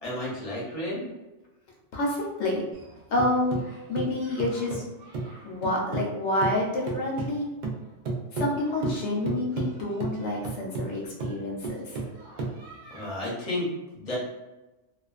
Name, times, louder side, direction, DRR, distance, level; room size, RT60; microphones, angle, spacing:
voice 1, 0.0-1.1 12.9-13.7 13.9-14.2, left 1 dB, 35° left, -6 dB, 0.7 m, -32 dB
voice 2, 1.9-2.6 3.1-4.8 5.4-7.5 8.3-12.0, left 1 dB, 70° left, -2 dB, 1.0 m, -28 dB
sound 1, 2.7-6.1 6.4-13.1, right 3 dB, 65° right, 0.5 m, -34 dB
2.4 x 2.2 x 2.4 m, 1.0 s
omnidirectional pair, 1.3 m